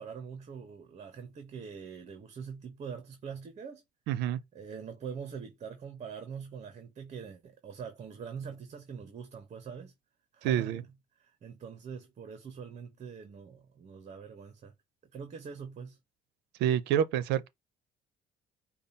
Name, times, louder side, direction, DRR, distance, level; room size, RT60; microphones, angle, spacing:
voice 1, 0.0-3.8 4.5-9.9 10.3-10.9 11.2-14.7 15.1-16.0, right 6 dB, 45° right, 1.0 m, -43 dB
voice 2, 4.1-4.4 10.4-10.8 16.6-17.5, right 10 dB, 90° right, 0.6 m, -27 dB
5.2 x 2.4 x 4.1 m
cardioid pair, 110°, 17 cm